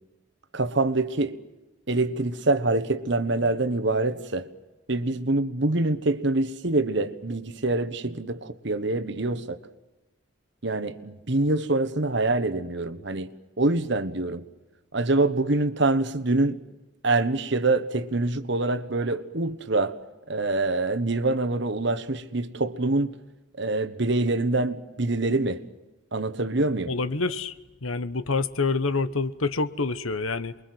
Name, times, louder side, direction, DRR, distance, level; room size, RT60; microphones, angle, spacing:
voice 1, 0.5-1.4 1.9-4.5 4.9-9.6 10.6-13.3 13.6-14.4 14.9-16.6 17.0-20.0 20.3-23.2 23.6-25.6 26.1-26.9, right 2 dB, 55° right, 1.3 m, -25 dB
voice 2, 26.9-30.6, left 3 dB, 85° left, 1.2 m, -27 dB
29.0 x 22.5 x 7.9 m
head